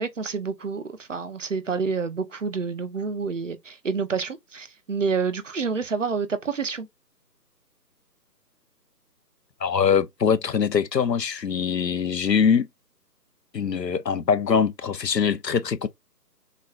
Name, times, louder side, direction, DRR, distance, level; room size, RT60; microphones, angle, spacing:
voice 1, 0.0-6.9, right 5 dB, 50° right, 1.0 m, -28 dB
voice 2, 9.6-12.7 13.5-15.9, left 6 dB, 75° left, 0.9 m, -23 dB
6.6 x 3.3 x 2.5 m
figure-of-eight pair, 155°, 50 cm